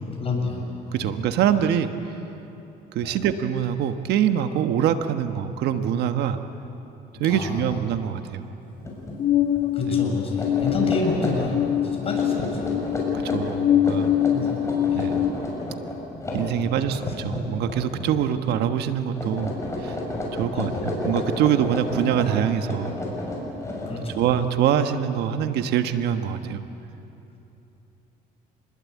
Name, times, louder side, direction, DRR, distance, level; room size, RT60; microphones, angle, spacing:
voice 1, 0.1-1.1 3.0-3.2 7.3-7.8 9.7-12.8 14.3-15.1 16.6-16.7 20.5-20.8 23.9-24.3, left 3 dB, 35° left, 0 dB, 7.3 m, -30 dB
voice 2, 0.9-1.9 2.9-6.4 7.2-8.5 9.9-10.0 13.1-14.1 14.9-15.2 16.3-19.5 19.8-20.0 20.3-22.9 24.1-26.6, right 9 dB, 75° right, 8 dB, 1.3 m, -24 dB
sound 1, 8.8-9.2 9.5-9.7 10.2-18.3 18.6-18.9 19.2-24.3, left 1 dB, 15° left, 6.9 m, -31 dB
sound 2, 9.2-15.3, left 11 dB, 55° left, 1.4 m, -24 dB
28.0 x 21.0 x 8.5 m, 2.9 s
cardioid pair, 110°, 17 cm